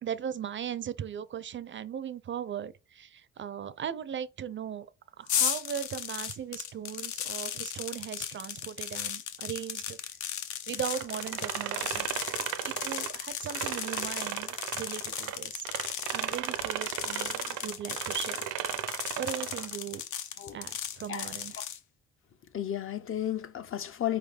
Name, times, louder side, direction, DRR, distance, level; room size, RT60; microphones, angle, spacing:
voice 1, 0.0-4.9 5.2-10.0 10.7-12.1 12.3-15.7 16.1-18.4 19.2-20.0 20.5-21.5, right 9 dB, 40° right, 0.4 m, -38 dB
sound 1, 5.3-21.8, left 9 dB, 75° left, 0.8 m, -36 dB
sound 2, 10.9-15.4 15.6-19.7, right 12 dB, 90° right, 0.6 m, -35 dB
voice 2, 22.5-24.2, left 11 dB, 45° left, 0.5 m, -33 dB
4.7 x 3.5 x 3.2 m
cardioid pair, 90°, 30 cm